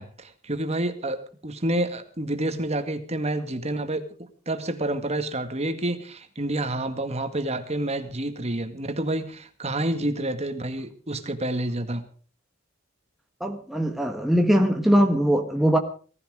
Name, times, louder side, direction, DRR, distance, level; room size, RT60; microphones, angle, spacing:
voice 1, 0.0-4.1 4.5-12.0, right 1 dB, 35° right, 2.0 m, -28 dB
voice 2, 13.4-15.8, equal, ahead, 1.4 m, -21 dB
18.5 x 15.0 x 5.0 m
head